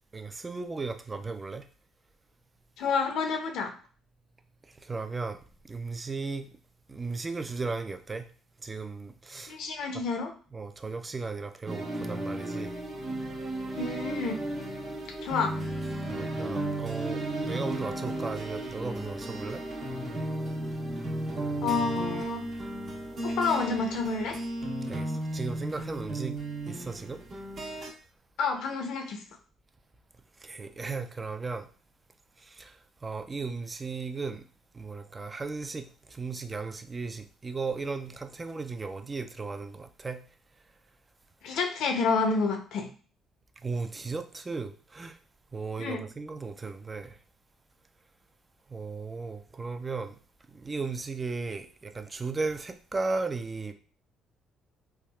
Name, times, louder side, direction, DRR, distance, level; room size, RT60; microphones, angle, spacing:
voice 1, 0.1-1.6 4.8-5.4 5.7-6.5 6.9-8.3 8.6-9.6 10.5-12.7 16.1-19.6 24.8-26.4 26.7-27.2 30.4-31.7 32.4-32.8 33.0-34.4 34.7-40.2 43.6-45.2 45.5-47.2 48.7-50.2 50.5-53.7, right 4 dB, 30° right, 0.4 m, -36 dB
voice 2, 2.8-3.7 9.5-10.3 13.7-14.4 15.2-15.6 21.6-22.4 23.2-24.4 28.4-29.2 41.4-42.9 45.8-46.0, left 4 dB, 70° left, 0.6 m, -29 dB
sound 1, 11.7-27.9, right 1 dB, 55° right, 1.1 m, -34 dB
3.4 x 2.2 x 2.3 m
hypercardioid pair, 60°, 0 cm